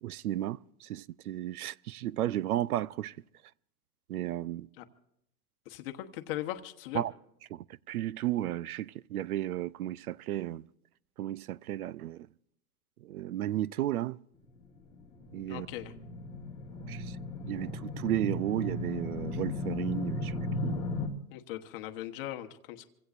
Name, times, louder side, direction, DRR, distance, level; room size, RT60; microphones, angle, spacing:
voice 1, 0.0-3.2 4.1-4.7 6.9-7.1 7.5-10.6 11.2-12.3 13.0-14.2 15.3-15.7 16.9-17.2 17.5-20.3 20.6-20.8, right 13 dB, 65° right, 0.6 m, -34 dB
voice 2, 5.7-7.0 15.5-15.9 21.3-22.9, left 13 dB, 35° left, 1.1 m, -39 dB
sound 1, 14.5-21.1, left 2 dB, 10° left, 1.2 m, -36 dB
27.5 x 16.5 x 2.5 m
hypercardioid pair, 155°, 49 cm